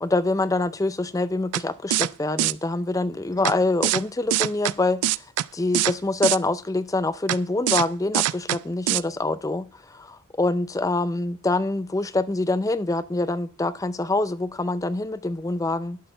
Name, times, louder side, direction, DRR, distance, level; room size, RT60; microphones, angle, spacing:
voice 1, 0.0-5.0 5.5-16.0, left 2 dB, 15° left, 0.4 m, -25 dB
sound 1, 1.5-1.6 1.9-2.1 2.4-2.5 3.5-3.6 3.8-4.0 4.3-4.7 5.0-5.5 5.7-5.9 6.2-6.4 7.3-7.4 7.7-7.9 8.1-8.6 8.9-9.0, right 13 dB, 90° right, 0.3 m, -22 dB
11.5 x 4.4 x 5.6 m
head